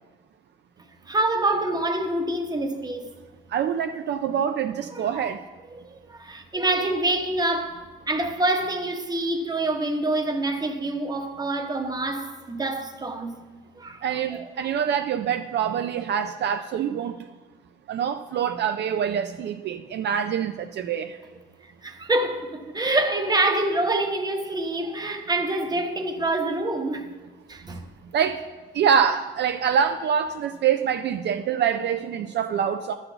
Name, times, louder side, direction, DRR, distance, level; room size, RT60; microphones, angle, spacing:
voice 1, 1.1-3.1 4.9-5.3 5.7-13.4 13.8-14.0 14.3-14.7 21.8-27.1 27.5-27.8, right 2 dB, 20° right, 1.0 m, -26 dB
voice 2, 3.5-5.4 14.0-17.2 17.9-21.2 28.1-28.4 28.7-32.9, right 8 dB, 60° right, 0.4 m, -25 dB
11.0 x 4.1 x 6.8 m
cardioid pair, 90°, 20 cm